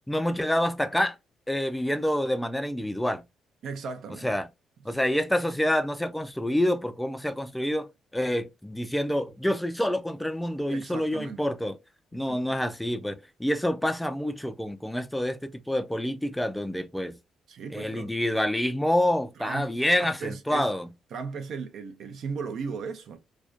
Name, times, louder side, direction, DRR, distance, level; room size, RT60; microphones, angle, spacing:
voice 1, 0.1-1.2 1.5-3.2 4.2-4.5 4.9-11.8 12.1-17.2 17.7-20.9, left 1 dB, 5° left, 0.3 m, -27 dB
voice 2, 3.6-4.3 10.7-11.5 12.1-12.6 17.5-18.1 19.4-20.7 21.1-23.2, right 5 dB, 70° right, 0.5 m, -37 dB
2.4 x 2.2 x 2.4 m
cardioid pair, 90°, 0 cm